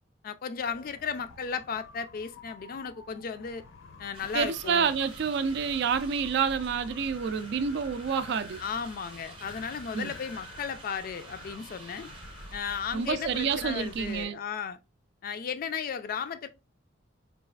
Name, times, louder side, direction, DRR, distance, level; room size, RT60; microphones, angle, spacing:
voice 1, 0.2-3.7 4.0-4.9 8.6-12.1 12.5-14.8 15.2-16.5, left 6 dB, 45° left, 0.3 m, -35 dB
Wind, 0.6-14.2, left 3 dB, 85° left, 0.7 m, -50 dB
sound 1, 4.1-14.3, right 2 dB, 25° right, 0.7 m, -48 dB
voice 2, 4.3-8.6 9.9-10.1 12.9-14.4, right 6 dB, 60° right, 0.4 m, -28 dB
4.0 x 2.4 x 2.3 m
head